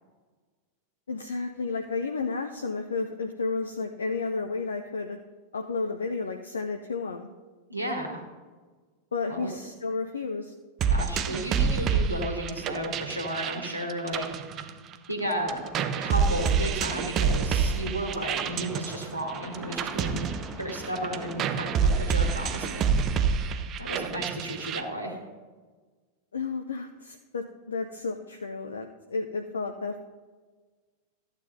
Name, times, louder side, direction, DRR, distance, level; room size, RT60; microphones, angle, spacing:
voice 1, 1.1-5.2 5.5-7.3 9.1-10.5 26.3-30.0, left 4 dB, 70° left, 5 dB, 0.5 m, -32 dB
voice 2, 7.7-8.2 9.3-9.5 10.9-14.2 15.1-15.6 15.9-20.3 20.5-22.8 23.8-25.2, right 1 dB, 90° left, 0 dB, 1.6 m, -33 dB
sound 1, 10.8-15.2 15.5-24.8, right 6 dB, 30° right, 0.5 m, -28 dB
sound 2, 15.2-22.9, left 1 dB, 5° left, 1.2 m, -44 dB
14.0 x 8.9 x 2.7 m, 1.4 s
figure-of-eight pair, 90°, 0 cm